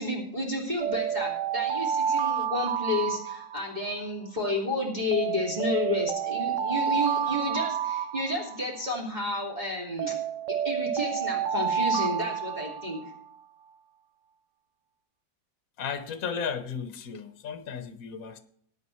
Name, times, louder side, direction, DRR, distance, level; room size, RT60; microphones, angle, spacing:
voice 1, 0.0-10.1 10.6-13.0, left 2 dB, 20° right, -4 dB, 2.8 m, -31 dB
sound 1, 0.8-4.0 5.1-8.9 10.0-13.2, right 8 dB, 85° right, 0.6 m, -29 dB
voice 2, 15.8-18.4, left 6 dB, 55° left, 8 dB, 1.4 m, -34 dB
21.0 x 9.8 x 3.2 m, 0.64 s
omnidirectional pair, 2.0 m